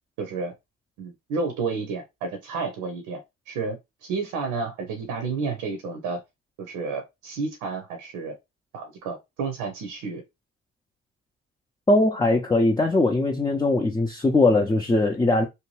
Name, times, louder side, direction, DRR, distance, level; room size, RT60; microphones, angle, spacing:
voice 1, 0.2-0.5 1.0-3.2 3.5-6.2 6.6-8.3 8.7-10.2, right 4 dB, 75° right, 0.7 m, -31 dB
voice 2, 11.9-15.5, left 2 dB, 10° left, 0.6 m, -20 dB
2.7 x 2.2 x 3.0 m
hypercardioid pair, 45°, 32 cm